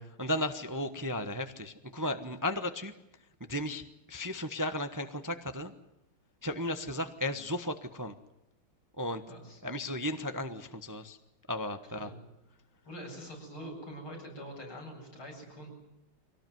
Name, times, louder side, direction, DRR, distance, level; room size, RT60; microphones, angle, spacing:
voice 1, 0.2-2.9 3.4-5.7 6.4-8.1 9.0-9.2 9.6-11.2 11.5-12.1, left 1 dB, 15° right, 9 dB, 0.7 m, -35 dB
voice 2, 9.3-9.6 12.0-12.2 12.9-15.7, equal, 90° left, 0 dB, 8.8 m, -44 dB
24.5 x 18.0 x 9.3 m, 0.90 s
omnidirectional pair, 2.2 m